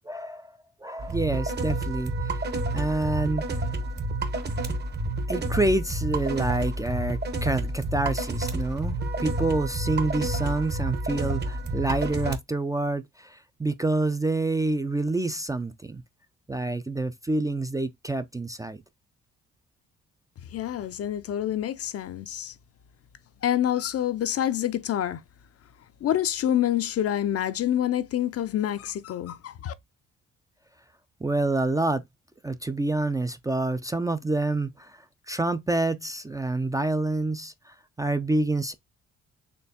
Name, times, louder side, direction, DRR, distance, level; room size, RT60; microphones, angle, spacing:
voice 1, 0.0-0.5 0.8-2.4 2.7-3.4 5.3-16.0 16.5-18.8 31.2-32.0 32.4-38.7, right 2 dB, 10° right, 0.4 m, -27 dB
sound 1, 1.0-12.4, right 2 dB, 35° right, 0.9 m, -29 dB
voice 2, 20.5-22.5 23.4-25.2 26.0-29.7, left 11 dB, 50° left, 0.5 m, -27 dB
4.3 x 3.1 x 2.7 m
cardioid pair, 90°, 30 cm